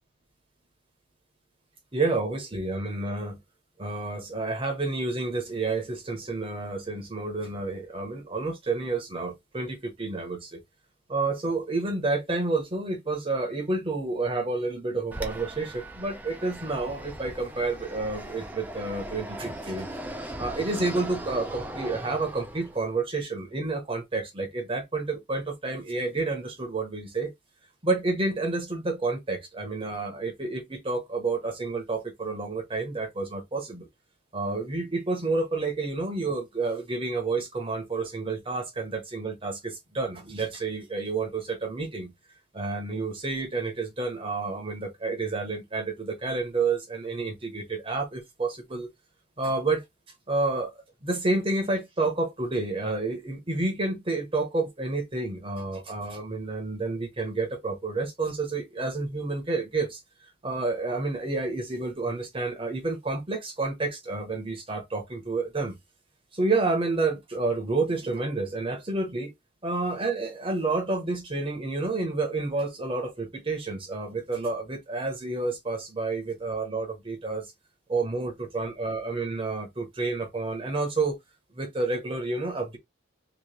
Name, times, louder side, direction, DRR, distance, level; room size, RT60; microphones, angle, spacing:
voice 1, 1.9-3.4 3.8-10.6 11.1-19.9 20.4-27.3 27.8-33.9 34.3-42.1 42.5-48.9 49.4-49.8 50.3-50.7 51.0-60.0 60.4-65.7 66.3-69.3 69.6-77.5 77.9-81.2 81.5-82.8, right 3 dB, 25° right, 0.9 m, -29 dB
Fixed-wing aircraft airplane, 15.1-22.9, right 1 dB, 10° right, 0.5 m, -39 dB
3.0 x 2.9 x 3.2 m
head